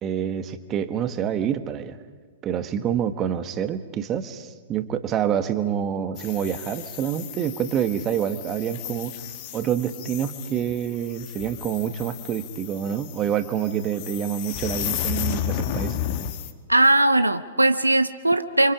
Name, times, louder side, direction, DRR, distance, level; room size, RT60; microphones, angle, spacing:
voice 1, 0.0-2.0 2.4-9.1 9.5-15.9, right 9 dB, 25° right, 9 dB, 1.5 m, -27 dB
sound 1, 6.2-16.5, left 10 dB, 45° left, 1.7 m, -33 dB
voice 2, 16.7-18.7, right 2 dB, 85° right, 12 dB, 0.7 m, -19 dB
30.0 x 25.0 x 5.0 m, 1.5 s
figure-of-eight pair, 105°, 0 cm